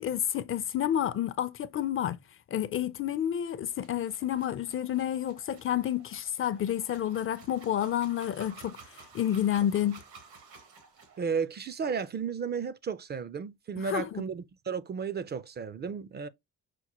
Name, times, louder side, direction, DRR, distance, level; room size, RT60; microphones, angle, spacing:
voice 1, 0.0-2.2 2.5-10.0 13.8-14.1, left 10 dB, 45° left, 0.5 m, -30 dB
sound 1, 3.4-11.2, right 5 dB, 85° right, 1.4 m, -53 dB
voice 2, 11.2-16.3, right 6 dB, 35° right, 0.4 m, -33 dB
5.9 x 2.1 x 2.9 m
cardioid pair, 90°, 30 cm